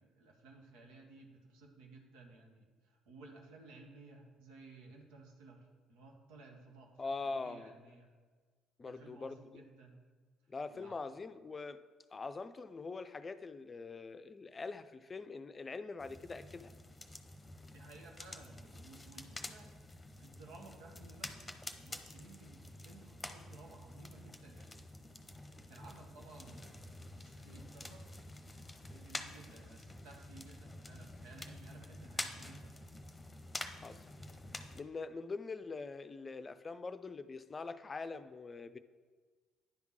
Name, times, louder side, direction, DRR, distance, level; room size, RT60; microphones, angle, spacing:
voice 1, 0.0-8.1 8.9-10.0 10.7-11.0 17.7-19.7 20.2-24.9 25.5-28.1 28.9-32.9, right 3 dB, 80° right, 1 dB, 1.4 m, -57 dB
voice 2, 7.0-7.7 8.8-9.6 10.5-11.8 12.1-16.7 33.8-34.1 34.7-38.8, left 4 dB, 30° left, 11 dB, 0.5 m, -43 dB
sound 1, 16.0-34.8, left 2 dB, 15° left, 0.9 m, -48 dB
10.0 x 3.6 x 6.2 m, 1.5 s
hypercardioid pair, 60°, 0 cm